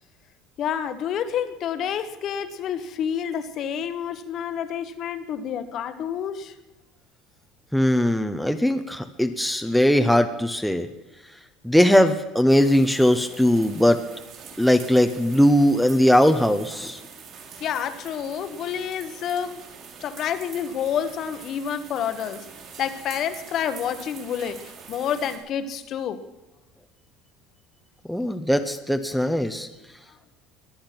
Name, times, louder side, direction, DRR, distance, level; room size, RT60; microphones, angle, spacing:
voice 1, 0.6-6.5 17.6-19.6 20.0-22.4 22.8-24.6 24.9-26.2, left 8 dB, 40° left, 11 dB, 1.2 m, -28 dB
voice 2, 7.7-10.9 11.6-14.0 14.6-17.0 28.1-29.7, equal, ahead, 6 dB, 0.8 m, -20 dB
sound 1, 12.5-25.4, right 6 dB, 45° right, 3.6 m, -44 dB
22.0 x 8.7 x 6.0 m, 1.1 s
cardioid pair, 145°, 0 cm